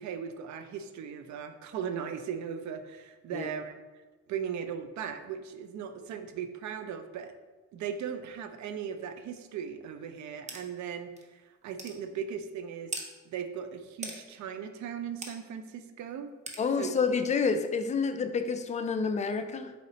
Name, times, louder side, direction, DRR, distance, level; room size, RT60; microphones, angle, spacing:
voice 1, 0.0-3.7 4.3-7.3 7.7-12.9 13.2-16.3 16.8-17.0, right 7 dB, 70° right, 8 dB, 0.5 m, -38 dB
sound 1, 10.5-10.6 11.2-11.3 11.8-12.0 12.9-13.1 14.0-14.2 15.2-15.3 16.5-16.6, right 3 dB, 25° right, 0.6 m, -38 dB
voice 2, 16.6-19.7, left 5 dB, 25° left, 8 dB, 0.3 m, -29 dB
4.2 x 4.0 x 2.8 m, 1.2 s
cardioid pair, 90°, 30 cm